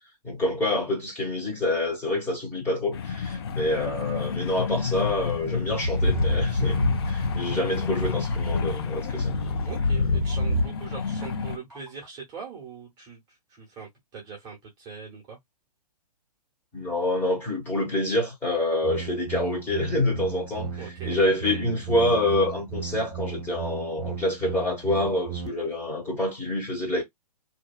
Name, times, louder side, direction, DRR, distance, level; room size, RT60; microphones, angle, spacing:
voice 1, 0.2-9.4 16.7-27.0, left 1 dB, 10° left, 1.1 m, -27 dB
sound 1, 2.9-11.6, left 5 dB, 40° left, 0.5 m, -31 dB
sound 2, 4.9-10.7, left 2 dB, 70° left, 1.0 m, -27 dB
voice 2, 9.6-15.4 20.8-21.2, right 6 dB, 20° right, 0.9 m, -41 dB
sound 3, 18.8-25.5, right 7 dB, 45° right, 0.5 m, -36 dB
2.6 x 2.2 x 2.2 m
figure-of-eight pair, 120°, 20 cm